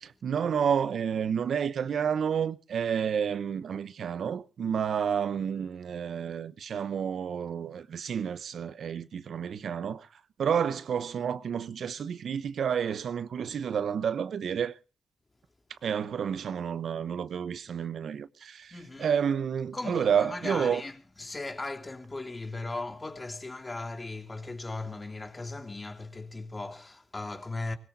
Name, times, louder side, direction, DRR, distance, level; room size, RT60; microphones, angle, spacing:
voice 1, 0.0-10.1 10.4-14.8 15.7-20.8, right 7 dB, 70° right, 0.8 m, -30 dB
voice 2, 18.7-19.1 19.7-27.8, left 2 dB, 30° left, 2.8 m, -37 dB
24.0 x 17.0 x 2.7 m
supercardioid pair, 55°, 0 cm